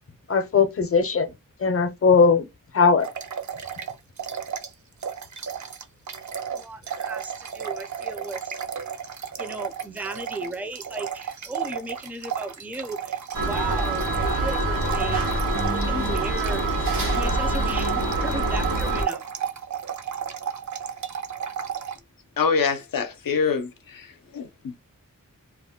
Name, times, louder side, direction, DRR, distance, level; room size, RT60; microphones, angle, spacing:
voice 1, 0.3-1.3 1.6-2.5 2.7-3.1, left 5 dB, 45° left, 0.6 m, -19 dB
sound 1, 3.0-4.7 5.0-22.0, right 8 dB, 60° right, 0.5 m, -33 dB
voice 2, 6.5-8.6 9.4-13.2 13.5-15.4 15.7-16.6 17.1-19.2, right 2 dB, 5° right, 0.4 m, -35 dB
sound 2, 13.3-19.0, right 2 dB, 85° right, 0.8 m, -25 dB
voice 3, 22.4-24.8, left 5 dB, 85° left, 0.6 m, -26 dB
2.4 x 2.1 x 3.6 m
wide cardioid pair, 75°, 33 cm